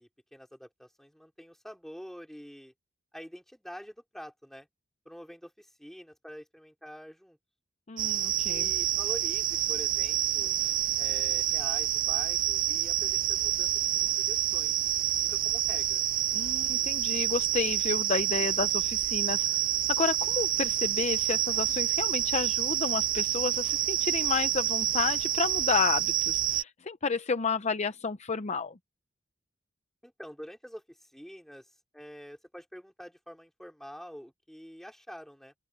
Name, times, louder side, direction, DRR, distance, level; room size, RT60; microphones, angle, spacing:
voice 1, 0.0-2.7 3.1-4.7 5.1-7.4 8.5-10.5 11.0-14.7 15.2-16.0 30.0-31.7 31.9-35.5, equal, ahead, 3.5 m, -46 dB
voice 2, 7.9-8.7 16.3-19.6 19.9-28.8, left 5 dB, 35° left, 0.6 m, -31 dB
sound 1, 8.0-26.6, right 12 dB, 45° right, 0.6 m, -28 dB
open air
head